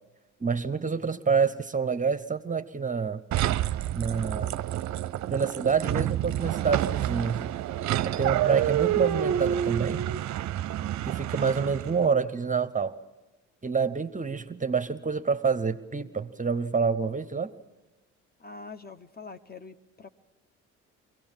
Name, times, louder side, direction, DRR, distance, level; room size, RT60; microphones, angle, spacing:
voice 1, 0.4-3.2 3.9-4.5 5.3-7.4 8.2-10.0 11.1-13.0 13.6-17.5, right 5 dB, 20° right, 11 dB, 0.9 m, -27 dB
sound 1, 3.3-12.0, right 12 dB, 55° right, 0.6 m, -28 dB
voice 2, 18.4-20.1, left 4 dB, 25° left, 10 dB, 0.9 m, -44 dB
23.0 x 17.0 x 7.3 m, 1.2 s
hypercardioid pair, 60°, 35 cm